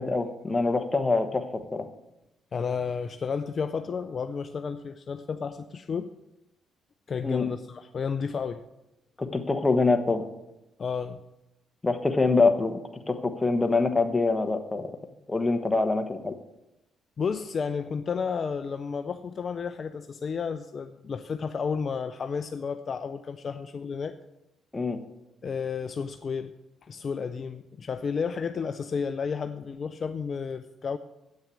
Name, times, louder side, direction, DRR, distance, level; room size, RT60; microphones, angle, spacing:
voice 1, 0.0-1.9 7.2-7.5 9.2-10.2 11.8-12.8 13.1-14.9 15.3-16.3 24.7-25.0, left 3 dB, 20° left, 6 dB, 1.2 m, -25 dB
voice 2, 2.5-6.1 7.1-8.6 10.8-11.2 17.2-24.2 25.4-26.5 26.8-31.0, left 6 dB, 45° left, 9 dB, 0.5 m, -32 dB
8.5 x 6.4 x 8.3 m, 0.92 s
cardioid pair, 90°, 0 cm